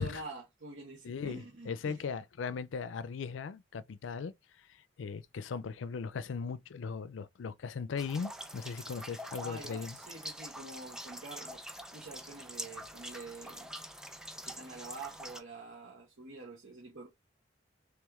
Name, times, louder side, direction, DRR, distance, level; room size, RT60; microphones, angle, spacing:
voice 1, 0.0-2.0 9.4-11.6 11.9-13.7 14.4-17.1, right 3 dB, 85° right, 1.2 m, -46 dB
voice 2, 1.0-4.3 5.0-10.0, left 5 dB, 80° left, 0.4 m, -38 dB
sound 1, 8.0-15.4, equal, 5° right, 0.5 m, -45 dB
3.3 x 3.1 x 3.5 m
head